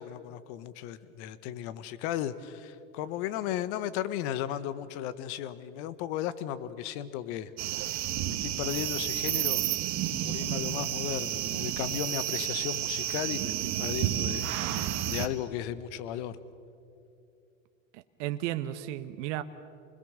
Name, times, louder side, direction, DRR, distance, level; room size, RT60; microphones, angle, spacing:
voice 1, 0.0-7.5 8.1-9.6 10.2-16.4, left 11 dB, 55° left, 14 dB, 1.4 m, -35 dB
sound 1, 7.6-15.3, right 13 dB, 40° right, 1.8 m, -31 dB
voice 2, 17.9-19.4, right 13 dB, 60° right, 10 dB, 1.2 m, -34 dB
28.5 x 21.0 x 6.7 m, 2.7 s
hypercardioid pair, 115°, 41 cm